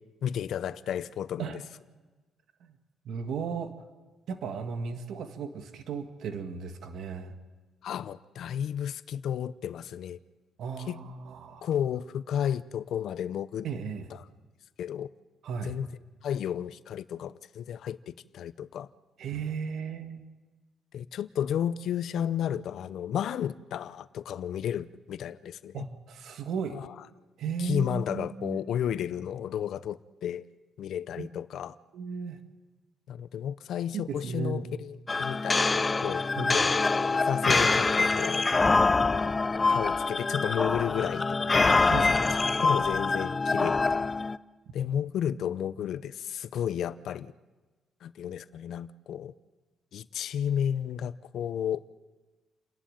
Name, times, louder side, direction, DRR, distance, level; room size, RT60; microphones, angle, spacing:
voice 1, 0.2-1.6 7.8-10.2 10.8-11.0 11.6-13.7 14.8-15.1 15.6-15.9 16.2-18.9 20.9-25.9 26.7-26.9 27.6-30.4 30.8-31.8 33.1-36.7 37.1-38.5 39.7-42.3 42.6-44.0 44.7-47.3 48.0-49.3 49.9-51.8, left 9 dB, 70° left, 0.7 m, -32 dB
voice 2, 3.1-3.7 4.3-7.3 10.6-11.7 13.6-14.1 15.4-15.8 19.2-20.3 25.7-26.8 27.4-28.6 31.2-31.3 31.9-32.4 34.1-34.7 36.4-36.6 41.9-42.2, right 6 dB, 70° right, 1.8 m, -35 dB
sound 1, 35.1-44.4, left 3 dB, 25° left, 0.6 m, -25 dB
29.0 x 11.5 x 9.1 m
cardioid pair, 90°, 0 cm